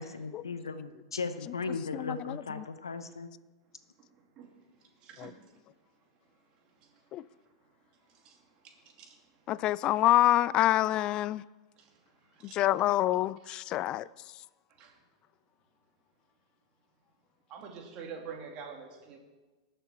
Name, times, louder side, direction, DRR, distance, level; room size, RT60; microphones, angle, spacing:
voice 1, 0.0-3.3, left 4 dB, 85° left, 0.9 m, -37 dB
voice 2, 1.9-2.6 5.2-5.3 7.1-7.2 9.5-11.4 12.4-14.1, left 14 dB, 40° left, 0.4 m, -27 dB
voice 3, 5.0-5.4 8.2-8.4 8.8-9.1 11.8-11.9 12.3-12.6 14.8-15.0 17.5-19.2, right 6 dB, 40° right, 2.6 m, -45 dB
19.5 x 6.7 x 4.4 m
figure-of-eight pair, 95°, 2 cm